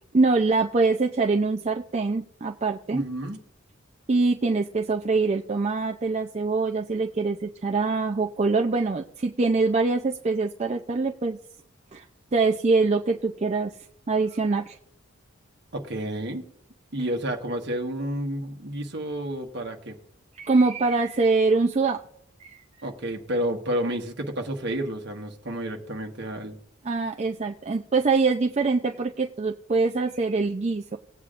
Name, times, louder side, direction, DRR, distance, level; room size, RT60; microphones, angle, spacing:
voice 1, 0.1-3.0 4.1-11.4 11.9-12.0 12.3-13.7 14.1-14.8 20.3-22.0 22.4-22.9 26.8-31.0, right 3 dB, 35° right, 3 dB, 0.4 m, -24 dB
voice 2, 2.9-3.4 15.7-16.4 16.9-19.9 22.8-26.6, right 1 dB, 55° right, 4 dB, 1.3 m, -30 dB
19.0 x 8.3 x 2.5 m, 0.71 s
head